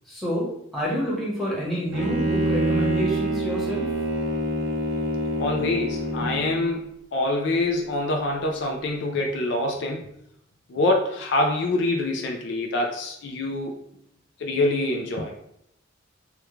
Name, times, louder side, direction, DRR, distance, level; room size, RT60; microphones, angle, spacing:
voice 1, 0.1-3.9, equal, ahead, -6 dB, 1.0 m, -28 dB
Bowed string instrument, 1.9-6.7, right 1 dB, 90° right, 0.6 m, -26 dB
voice 2, 5.4-6.8 7.1-10.1 10.7-13.8 14.4-15.3, left 2 dB, 60° left, 1 dB, 0.4 m, -25 dB
3.6 x 2.2 x 3.0 m, 0.75 s
head